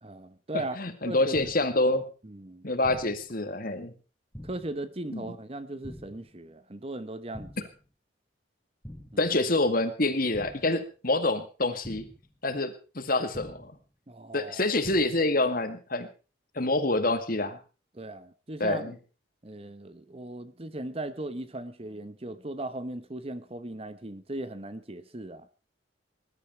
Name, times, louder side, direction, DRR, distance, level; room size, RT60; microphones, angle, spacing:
voice 1, 0.0-0.8 1.0-1.4 2.2-2.6 4.4-7.7 9.1-9.4 14.1-14.6 17.9-19.0 19.4-25.5, right 2 dB, 30° right, 13 dB, 1.0 m, -38 dB
voice 2, 0.5-2.1 2.6-3.9 5.1-5.3 9.2-12.1 12.4-13.8 14.3-16.1 16.6-17.6 18.6-18.9, left 2 dB, 45° left, 9 dB, 2.0 m, -27 dB
sound 1, 1.3-1.8 2.8-3.3 4.3-4.8 5.8-6.3 7.3-7.8 8.8-9.3 10.3-10.8 11.8-12.3 13.3-13.8 14.8-15.3, equal, 5° left, 2.6 m, -45 dB
20.0 x 12.0 x 4.5 m, 0.34 s
head